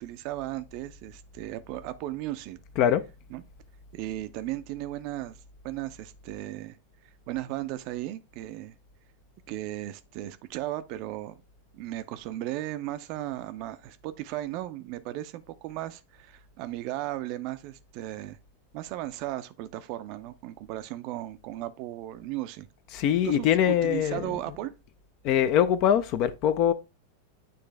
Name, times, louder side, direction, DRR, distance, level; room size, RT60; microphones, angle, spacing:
voice 1, 0.0-2.6 3.3-3.4 3.9-5.4 5.6-6.8 7.3-8.7 9.5-11.4 11.7-18.4 18.7-22.7 23.2-24.7, right 15 dB, 45° right, 0.5 m, -36 dB
voice 2, 22.9-24.3 25.2-26.7, left 10 dB, 40° left, 0.5 m, -23 dB
9.3 x 3.3 x 3.3 m
figure-of-eight pair, 90°, 0 cm